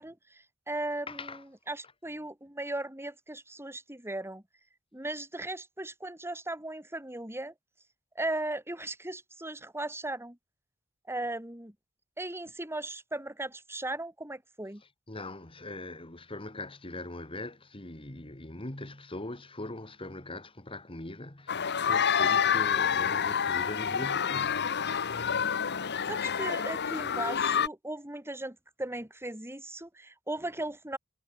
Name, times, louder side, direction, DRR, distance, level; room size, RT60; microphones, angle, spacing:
voice 1, 0.0-1.4 1.7-4.4 4.9-7.5 8.2-10.4 11.1-11.7 12.2-14.8 26.1-31.0, right 2 dB, 10° right, 5.6 m, -37 dB
voice 2, 1.1-1.4 14.8-24.6, left 2 dB, 25° left, 2.2 m, -41 dB
sound 1, 21.5-27.7, left 7 dB, 55° left, 1.2 m, -28 dB
head